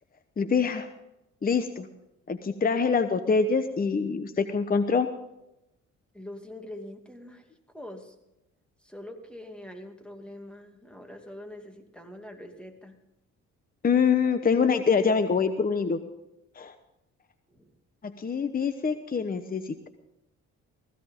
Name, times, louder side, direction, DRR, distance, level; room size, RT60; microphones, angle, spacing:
voice 1, 0.4-0.9 1.4-1.9 2.3-5.1 13.8-16.0 16.6-16.7 18.0-19.9, left 5 dB, 30° left, 9 dB, 1.0 m, -25 dB
voice 2, 6.1-7.4 7.7-8.2 8.8-13.0 17.5-17.7, left 1 dB, 5° left, 4 dB, 2.5 m, -44 dB
16.0 x 15.5 x 3.7 m, 0.89 s
cardioid pair, 90°, 30 cm